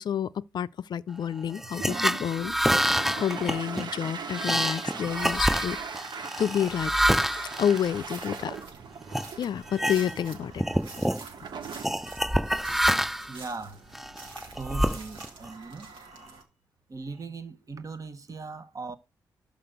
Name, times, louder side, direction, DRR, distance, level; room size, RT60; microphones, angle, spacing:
voice 1, 0.0-5.8 6.1-6.9 7.6-8.6 9.4-10.6, left 9 dB, 65° left, 0.4 m, -29 dB
sound 1, 1.5-8.6 9.1-9.3 9.7-10.3 10.6-11.2 11.8-13.4 13.9-15.5, equal, 5° right, 0.4 m, -27 dB
Toilet flush, 1.6-14.8, right 6 dB, 65° right, 0.9 m, -41 dB
sound 2, 7.8-16.4, right 4 dB, 80° right, 1.7 m, -48 dB
voice 2, 13.3-13.8 14.6-15.9 16.9-18.9, right 4 dB, 45° right, 1.1 m, -39 dB
6.0 x 5.1 x 6.6 m
cardioid pair, 65°, 8 cm